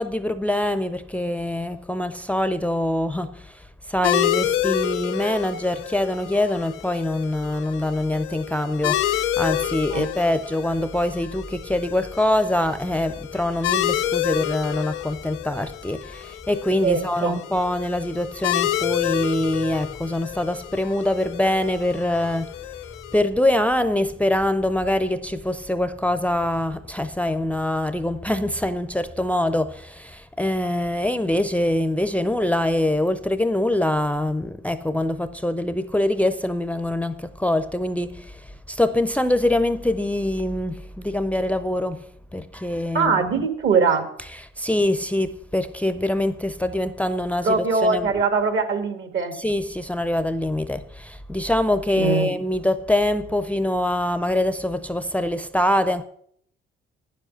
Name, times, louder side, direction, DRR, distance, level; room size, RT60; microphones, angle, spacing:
voice 1, 0.0-3.5 3.9-22.5 23.1-38.3 38.7-42.0 42.3-43.2 44.6-48.1 49.4-56.0, left 1 dB, 5° left, 0.5 m, -24 dB
sound 1, 4.0-23.2, left 12 dB, 90° left, 0.8 m, -29 dB
voice 2, 16.8-17.4 42.9-44.0 47.4-49.4 52.0-52.3, right 4 dB, 65° right, 1.9 m, -21 dB
9.3 x 7.5 x 7.8 m
cardioid pair, 95°, 21 cm